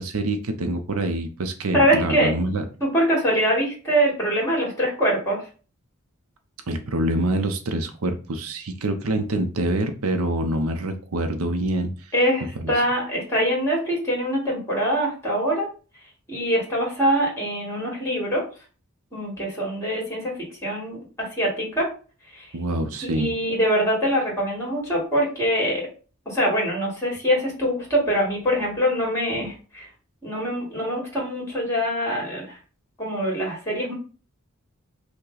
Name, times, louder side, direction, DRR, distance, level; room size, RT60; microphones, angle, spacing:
voice 1, 0.0-2.6 6.7-12.1 12.6-12.7 22.5-23.3, right 1 dB, 75° right, 6 dB, 0.6 m, -26 dB
voice 2, 1.7-2.3 2.8-5.4 12.1-15.7 16.3-18.4 19.1-21.9 22.3-22.5 23.0-25.9 26.3-29.9 30.2-32.6 33.0-33.9, equal, 15° left, -2 dB, 2.1 m, -24 dB
5.5 x 2.2 x 3.9 m, 0.36 s
head